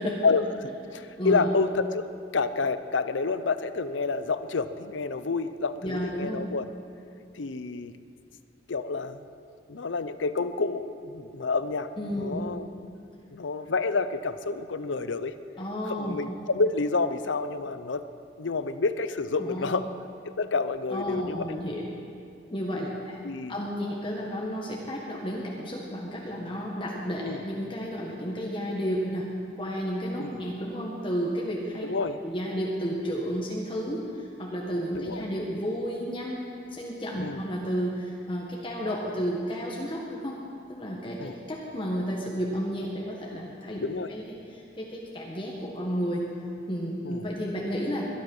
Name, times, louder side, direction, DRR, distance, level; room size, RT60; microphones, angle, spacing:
voice 1, 0.2-6.7 7.3-8.0 8.7-9.2 9.7-11.9 12.2-12.7 13.3-15.3 15.9-18.1 18.4-19.9 20.3-21.5 22.7-22.9 23.2-23.6 27.2-27.4 30.2-30.4 31.8-32.2 34.9-35.2 37.2-37.4 41.2-41.4 43.8-44.1 47.0-47.3, left 4 dB, 85° left, 12 dB, 0.7 m, -29 dB
voice 2, 0.9-1.5 5.8-6.4 12.0-12.5 15.6-16.2 19.4-19.7 20.9-21.8 22.5-23.2 23.5-31.8 32.2-40.4 40.7-43.8 44.1-46.2 46.7-48.0, equal, 25° left, -3 dB, 1.5 m, -32 dB
22.0 x 11.5 x 5.5 m, 2.5 s
head